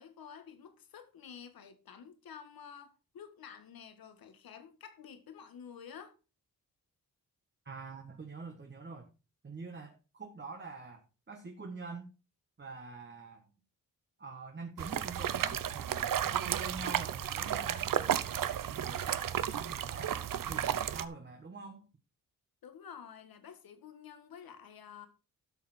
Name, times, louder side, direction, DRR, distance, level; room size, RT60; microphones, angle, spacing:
voice 1, 0.0-6.2 22.6-25.1, left 7 dB, 85° left, 1.8 m, -50 dB
voice 2, 7.6-9.1 9.4-11.0 11.3-12.1 12.6-13.4 14.2-20.2 20.5-21.9, right 4 dB, 30° right, 1.5 m, -46 dB
sound 1, 14.8-21.0, right 10 dB, 70° right, 0.8 m, -33 dB
12.5 x 6.8 x 4.3 m
wide cardioid pair, 135°, 35 cm